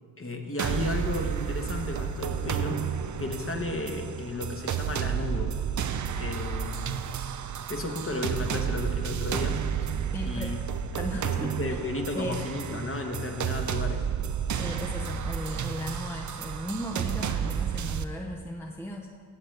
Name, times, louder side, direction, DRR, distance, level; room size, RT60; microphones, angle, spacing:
voice 1, 0.2-2.9 3.2-5.6 6.2-7.1 7.7-9.9 10.2-10.6 11.2-14.1, left 2 dB, 30° left, 4 dB, 1.3 m, -34 dB
sound 1, 0.6-18.0, right 8 dB, 40° right, 0.6 m, -31 dB
sound 2, 2.3-6.3, left 2 dB, 65° right, 2.0 m, -45 dB
voice 2, 10.1-11.8 12.1-12.5 14.5-19.1, equal, 5° left, 1 dB, 0.8 m, -36 dB
14.0 x 7.5 x 3.3 m, 2.1 s
hypercardioid pair, 40°, 47 cm